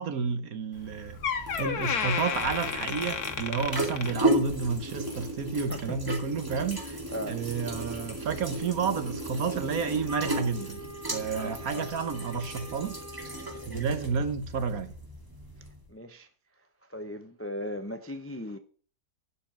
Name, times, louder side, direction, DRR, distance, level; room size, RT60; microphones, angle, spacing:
voice 1, 0.0-7.0 7.3-10.8 11.1-13.0 13.7-14.9, right 5 dB, 65° right, 1.4 m, -31 dB
Door, 0.8-0.9 1.2-4.7 5.1-5.4 6.1-6.2, left 7 dB, 70° left, 1.6 m, -32 dB
sound 1, 0.8-15.9, right 1 dB, 15° right, 2.4 m, -35 dB
voice 2, 5.5-6.1 7.1-7.4 11.3-11.9 15.9-16.3 16.9-18.6, equal, 20° left, 0.4 m, -38 dB
Wind instrument woodwind instrument, 10.1-13.7, right 1 dB, 40° right, 0.5 m, -44 dB
11.5 x 5.2 x 7.4 m
omnidirectional pair, 1.7 m